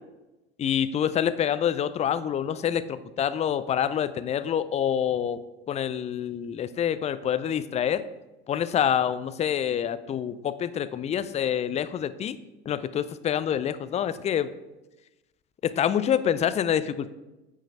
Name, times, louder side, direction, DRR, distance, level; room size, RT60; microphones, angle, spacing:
voice 1, 0.6-5.4 5.7-8.0 8.5-12.4 12.7-14.5 15.6-17.1, left 9 dB, 20° left, 14 dB, 0.5 m, -26 dB
8.8 x 5.6 x 6.3 m, 1.0 s
figure-of-eight pair, 70°, 32 cm